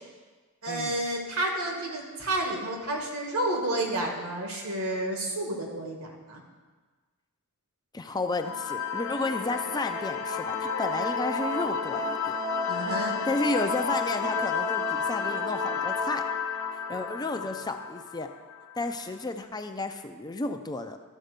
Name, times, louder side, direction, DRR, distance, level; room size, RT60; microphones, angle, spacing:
voice 1, 0.6-6.4 12.7-13.1, right 1 dB, 75° right, 1 dB, 1.9 m, -30 dB
voice 2, 7.9-12.4 13.3-16.2 16.7-18.3 18.8-21.0, left 2 dB, 20° left, 6 dB, 0.5 m, -32 dB
sound 1, 8.4-18.8, left 5 dB, 65° left, 0.8 m, -31 dB
13.0 x 4.4 x 6.6 m, 1.4 s
head